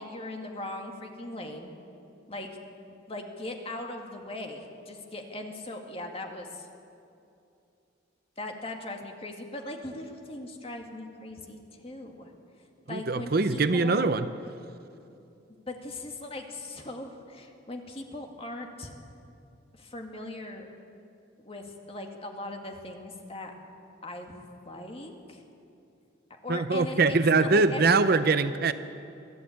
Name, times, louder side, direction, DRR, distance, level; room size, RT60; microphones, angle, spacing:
voice 1, 0.0-1.7 2.3-2.5 3.1-6.7 8.4-12.3 12.9-14.1 15.7-18.9 19.7-20.7 21.4-23.5 24.0-25.4 26.4-28.0, left 2 dB, 30° left, 3 dB, 2.0 m, -39 dB
voice 2, 12.9-14.3 26.5-28.7, right 3 dB, 50° right, 12 dB, 0.6 m, -23 dB
23.5 x 14.0 x 8.6 m, 2.6 s
head